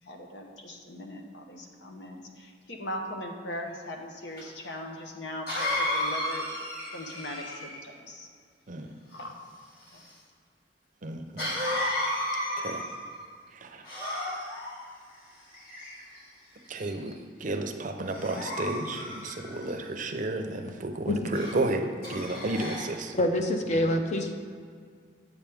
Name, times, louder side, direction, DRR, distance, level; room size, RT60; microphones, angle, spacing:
voice 1, 0.0-6.5 6.9-8.3 9.1-9.4 9.9-10.0, left 1 dB, 75° left, 2 dB, 1.0 m, -40 dB
Cough, 4.4-4.5 5.5-7.8 11.4-13.1 13.8-14.7 15.5-16.2 16.8-17.1 18.1-19.7 21.3-21.6 22.0-22.9, left 1 dB, 55° left, 2.1 m, -33 dB
voice 2, 11.0-11.5 12.6-12.8 13.6-13.8 16.7-23.1, right 2 dB, 45° right, 5 dB, 0.6 m, -32 dB
voice 3, 23.1-24.3, left 1 dB, 40° left, 4 dB, 0.7 m, -26 dB
8.0 x 7.1 x 3.5 m, 2.1 s
head